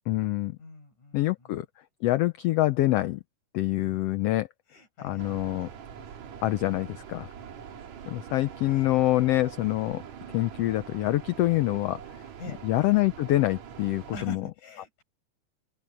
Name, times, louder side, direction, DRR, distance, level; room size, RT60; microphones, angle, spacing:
voice 1, 0.0-0.6 1.1-1.7 2.0-3.2 3.5-4.5 5.0-5.7 6.4-7.3 8.1-10.0 10.3-12.0 12.6-14.4, left 16 dB, 90° left, 1.3 m, -25 dB
voice 2, 0.6-1.6 3.8-4.0 4.7-5.5 5.8-5.9 7.4-7.7 12.4-12.6 14.1-15.0, left 2 dB, 70° left, 7.1 m, -44 dB
sound 1, 5.2-14.3, right 8 dB, 65° right, 3.0 m, -44 dB
open air
omnidirectional pair, 3.5 m